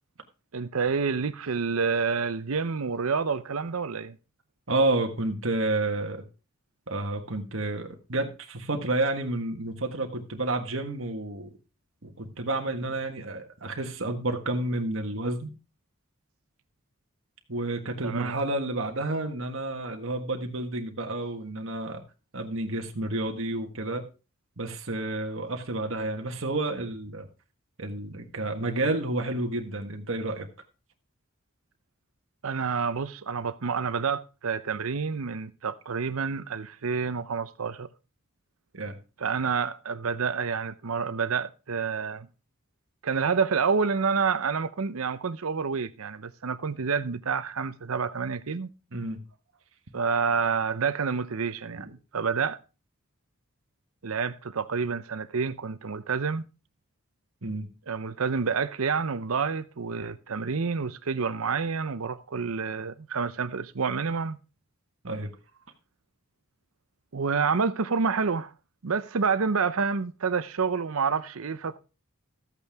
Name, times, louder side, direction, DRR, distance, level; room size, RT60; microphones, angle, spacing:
voice 1, 0.5-4.1 18.0-18.4 32.4-37.9 39.2-42.3 43.0-48.7 49.9-51.9 52.1-52.6 54.0-56.4 57.9-64.4 67.1-68.5 68.8-71.8, right 5 dB, 85° right, 0.7 m, -28 dB
voice 2, 4.7-6.2 6.9-11.5 12.0-15.5 17.5-22.0 22.3-24.0 24.6-27.3 27.8-30.5 38.7-39.0 48.9-49.2 51.7-51.9 57.4-57.7 65.0-65.3, right 2 dB, 65° right, 1.5 m, -30 dB
13.5 x 8.3 x 3.5 m
head